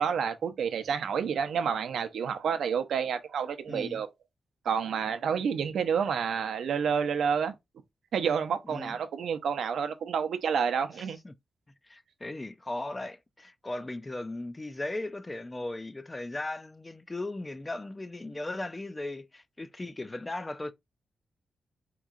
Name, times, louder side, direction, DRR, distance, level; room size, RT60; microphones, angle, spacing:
voice 1, 0.0-4.1 4.6-7.5 8.1-11.2, right 7 dB, 85° right, 0.5 m, -29 dB
voice 2, 3.7-4.0 8.6-9.0 11.2-11.3 11.9-20.7, left 2 dB, 20° left, 0.3 m, -37 dB
3.6 x 2.9 x 2.4 m
wide cardioid pair, 135°, 0 cm